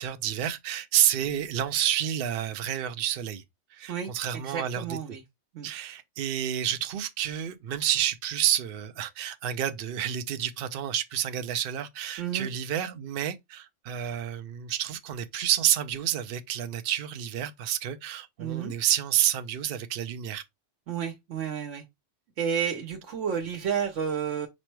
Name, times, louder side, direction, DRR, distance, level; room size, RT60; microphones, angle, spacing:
voice 1, 0.0-3.4 3.7-5.0 5.6-20.4, right 11 dB, 60° right, 0.7 m, -29 dB
voice 2, 3.9-5.2 5.5-5.7 12.2-12.5 18.4-18.7 20.9-21.8 22.4-24.5, right 7 dB, 90° right, 1.1 m, -31 dB
5.2 x 2.1 x 4.5 m
omnidirectional pair, 1.2 m